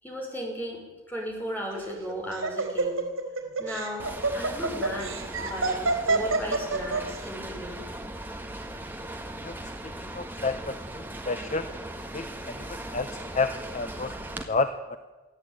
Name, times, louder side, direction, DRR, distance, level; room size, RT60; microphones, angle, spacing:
voice 1, 0.0-3.1 3.6-7.9 8.6-8.7, equal, 10° left, -1 dB, 6.0 m, -36 dB
Laughter, 1.7-7.2, right 3 dB, 90° right, 4.2 m, -27 dB
sound 1, 4.0-14.4, right 1 dB, 10° right, 1.7 m, -38 dB
voice 2, 10.0-11.7 12.1-13.1 13.3-15.0, left 3 dB, 35° left, 9 dB, 0.9 m, -31 dB
23.5 x 14.5 x 9.1 m, 1.2 s
head